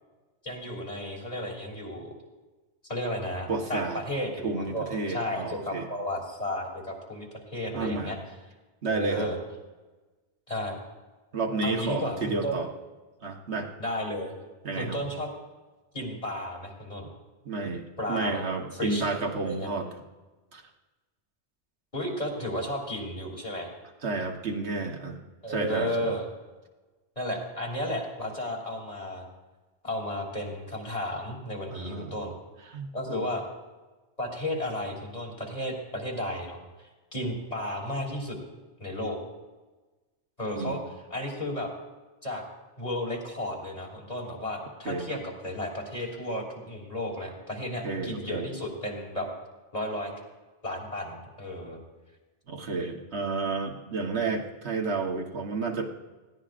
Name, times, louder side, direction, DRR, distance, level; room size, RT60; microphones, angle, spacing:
voice 1, 0.4-2.1 2.8-8.2 8.9-9.4 10.5-10.8 11.6-12.6 13.8-14.3 14.7-15.3 15.9-17.1 18.0-18.4 18.7-19.0 19.4-19.7 21.9-23.7 25.4-26.2 27.2-29.3 29.8-32.3 32.9-33.4 34.2-38.4 38.8-39.2 40.4-40.8 41.1-41.7 42.2-42.4 42.8-49.3 49.7-50.1 50.6-51.8, left 1 dB, 35° left, -1 dB, 3.0 m, -33 dB
voice 2, 3.5-4.0 4.4-5.9 7.7-8.2 8.8-9.3 11.3-12.7 13.2-13.7 14.6-15.0 17.5-19.9 20.5-20.6 24.0-25.2 25.5-26.0 31.7-32.1 32.7-33.2 40.6-40.8 44.9-45.2 47.8-48.5 52.5-55.9, right 3 dB, 75° right, 2 dB, 1.6 m, -31 dB
20.5 x 15.5 x 2.5 m, 1.2 s
omnidirectional pair, 1.1 m